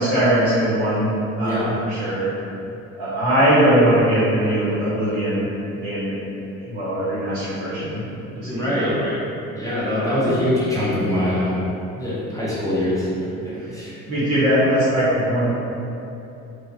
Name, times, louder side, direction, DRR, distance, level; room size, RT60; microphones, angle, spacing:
voice 1, 0.0-2.3 2.9-5.5 5.8-6.2 6.6-9.0 10.0-10.3 14.1-15.5, right 1 dB, 70° right, -12 dB, 1.4 m, -21 dB
voice 2, 8.4-9.2 9.5-11.7 12.0-14.0, left 1 dB, 10° left, -9 dB, 0.5 m, -24 dB
3.1 x 2.4 x 2.9 m, 2.8 s
figure-of-eight pair, 55°, 43 cm